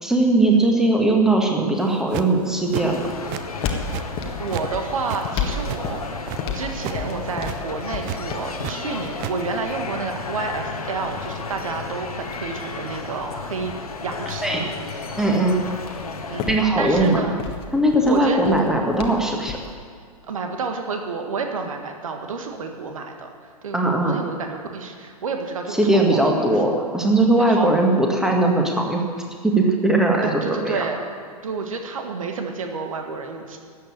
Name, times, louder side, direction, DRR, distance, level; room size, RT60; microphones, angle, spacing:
voice 1, 0.0-3.1 14.4-14.6 15.2-15.6 16.5-17.2 17.7-19.6 23.7-24.2 25.7-29.0 29.4-30.8, right 2 dB, 5° right, 1 dB, 1.8 m, -19 dB
sound 1, 1.8-2.4 2.7-3.4 3.7-4.7 4.9-6.4 6.7-7.0 7.3-7.6 8.0-8.7 9.0-9.3, right 13 dB, 30° right, 0.6 m, -32 dB
sound 2, 2.7-19.7, left 5 dB, 30° left, 1.5 m, -35 dB
sound 3, 2.8-16.5, left 4 dB, 70° left, 1.4 m, -33 dB
voice 2, 4.4-6.0 6.5-13.7 14.0-14.7 16.3-16.5 16.8-17.4 18.0-18.7 20.2-26.6 27.5-27.7 30.2-31.0 31.4-33.6, right 4 dB, 60° right, 4 dB, 1.8 m, -30 dB
13.0 x 8.4 x 8.9 m, 2.2 s
figure-of-eight pair, 110°, 20 cm